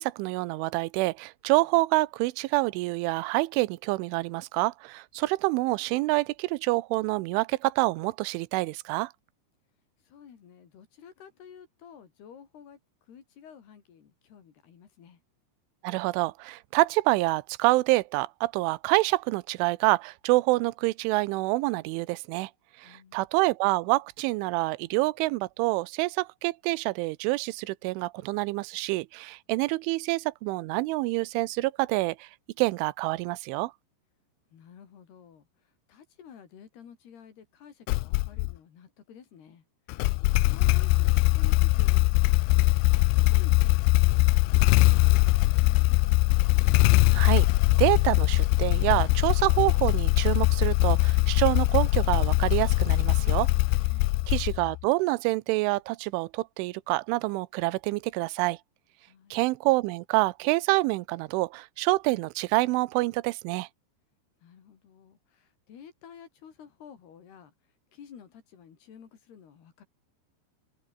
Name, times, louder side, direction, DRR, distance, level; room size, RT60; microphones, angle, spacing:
voice 1, 0.0-9.1 15.8-22.5 22.8-32.3 32.6-33.7 47.1-47.5 47.8-53.5 54.3-58.6 59.3-63.7, right 21 dB, 85° right, 3.1 m, -27 dB
voice 2, 10.0-15.2 22.8-23.2 34.5-39.6 40.4-42.8 43.1-44.2 44.7-46.4 53.9-54.3 59.1-59.4 64.4-69.8, left 8 dB, 60° left, 5.0 m, -52 dB
Motorcycle / Engine starting, 37.9-38.5 39.9-54.8, left 23 dB, 85° left, 2.6 m, -22 dB
omnidirectional pair, 5.5 m